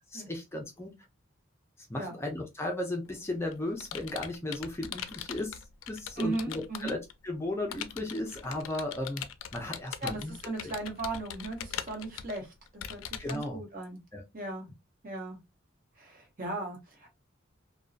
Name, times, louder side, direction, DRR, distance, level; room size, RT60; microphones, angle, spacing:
voice 1, 0.1-0.9 1.8-5.6 5.9-9.2 9.5-10.3 13.2-13.6 14.1-14.2, left 1 dB, 15° left, 0.4 m, -35 dB
Computer keyboard, 3.1-7.1 7.7-13.5, left 9 dB, 85° left, 0.3 m, -41 dB
voice 2, 6.2-6.9 10.0-14.0 14.3-14.7 15.0-15.4 16.0-17.1, right 2 dB, 45° right, 1.0 m, -37 dB
2.6 x 2.2 x 2.3 m
head